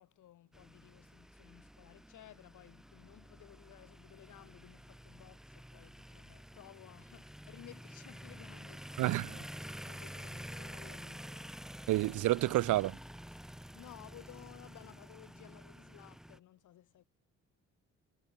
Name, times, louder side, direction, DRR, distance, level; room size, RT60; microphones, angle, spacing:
voice 1, 0.0-11.9 12.4-12.5 13.3-17.0, left 13 dB, 80° left, 5.6 m, -57 dB
sound 1, 0.5-16.4, equal, ahead, 1.4 m, -49 dB
voice 2, 9.0-9.3 11.9-13.0, right 17 dB, 80° right, 0.8 m, -29 dB
cardioid pair, 90°, 30 cm